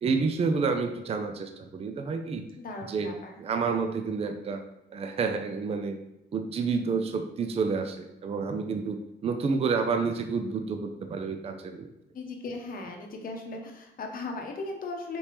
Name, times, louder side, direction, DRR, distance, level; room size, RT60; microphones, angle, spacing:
voice 1, 0.0-2.5 2.9-3.1 3.4-4.6 4.9-6.0 6.3-11.9, right 5 dB, 30° right, 6 dB, 0.4 m, -29 dB
voice 2, 2.6-3.4 12.1-15.2, left 3 dB, 45° left, 2 dB, 0.8 m, -37 dB
4.3 x 3.3 x 2.9 m, 0.87 s
cardioid pair, 90°, 20 cm